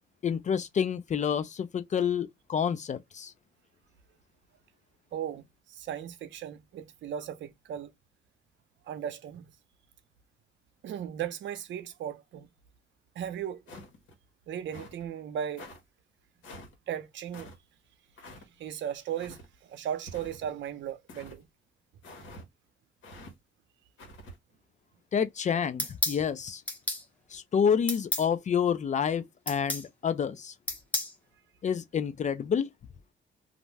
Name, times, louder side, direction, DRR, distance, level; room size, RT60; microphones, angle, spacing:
voice 1, 0.2-3.3 25.1-26.6 27.3-30.5 31.6-32.7, left 7 dB, 40° left, 0.4 m, -28 dB
voice 2, 5.1-7.9 8.8-9.5 10.8-12.5 13.2-13.6 14.5-15.7 16.9-17.5 18.6-21.4, right 9 dB, 70° right, 0.6 m, -36 dB
sound 1, 13.7-14.2 14.7-15.0 15.6-15.8 16.4-16.7 17.3-17.6 18.2-18.5 19.2-19.5 20.1-20.6 21.1-21.4 22.0-22.5 23.0-23.3 24.0-24.4, left 1 dB, 80° left, 1.0 m, -47 dB
sound 2, 25.8-26.2 26.7-27.0 27.9-28.3 29.5-29.9 30.7-31.1, left 1 dB, 5° left, 0.9 m, -31 dB
2.5 x 2.1 x 3.2 m
cardioid pair, 90°, 20 cm